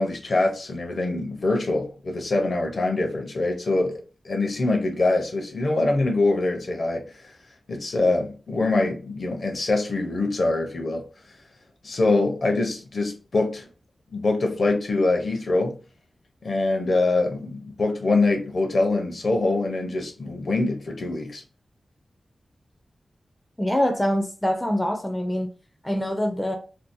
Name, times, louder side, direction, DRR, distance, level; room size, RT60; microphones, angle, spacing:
voice 1, 0.0-7.1 7.7-11.0 11.8-13.7 14.1-15.8 16.4-21.4, left 2 dB, 55° left, 0.6 m, -24 dB
voice 2, 23.6-25.5 25.8-26.6, equal, 10° left, 0.4 m, -24 dB
2.6 x 2.0 x 2.5 m
wide cardioid pair, 120°, 0 cm